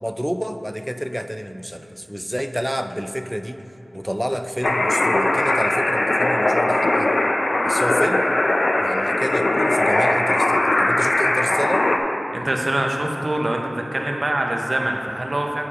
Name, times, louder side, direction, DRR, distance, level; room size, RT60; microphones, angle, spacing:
voice 1, 0.0-3.6 3.9-7.1 7.6-8.4 8.8-11.9, equal, ahead, 8 dB, 0.3 m, -29 dB
sound 1, 4.6-12.0, left 2 dB, 70° left, 0.4 m, -20 dB
voice 2, 12.3-15.6, right 1 dB, 50° right, 1 dB, 0.6 m, -24 dB
8.2 x 7.3 x 2.4 m, 2.8 s
wide cardioid pair, 70°, 0 cm